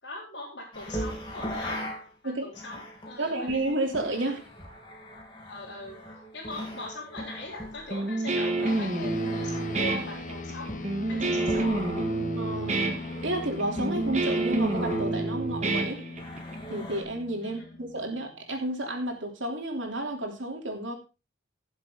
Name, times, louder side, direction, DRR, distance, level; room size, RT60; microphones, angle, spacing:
voice 1, 0.0-1.8 2.2-3.6 4.2-4.3 5.5-6.0 6.3-11.6 17.4-17.8, left 2 dB, 70° left, 4.2 m, -41 dB
sound 1, 0.7-2.1 2.5-15.2 16.2-17.0, equal, 25° left, 2.9 m, -39 dB
voice 2, 3.2-4.4 12.3-12.8 13.2-16.1 16.7-21.0, right 1 dB, 85° right, 3.2 m, -31 dB
Guitar, 7.9-16.5, right 2 dB, 35° right, 1.8 m, -28 dB
sound 2, 8.7-18.4, left 3 dB, 40° left, 0.9 m, -40 dB
16.0 x 7.4 x 3.8 m
head